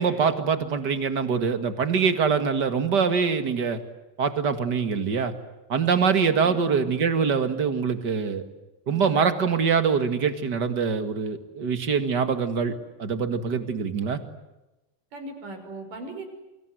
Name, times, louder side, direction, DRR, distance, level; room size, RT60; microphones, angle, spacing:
voice 1, 0.0-3.8 4.2-5.3 5.7-8.4 8.9-12.7 13.0-14.2, right 6 dB, 35° right, 9 dB, 1.9 m, -24 dB
voice 2, 6.3-6.9 15.1-16.3, right 2 dB, 60° right, 6 dB, 7.2 m, -38 dB
29.5 x 25.0 x 8.0 m, 0.99 s
omnidirectional pair, 4.2 m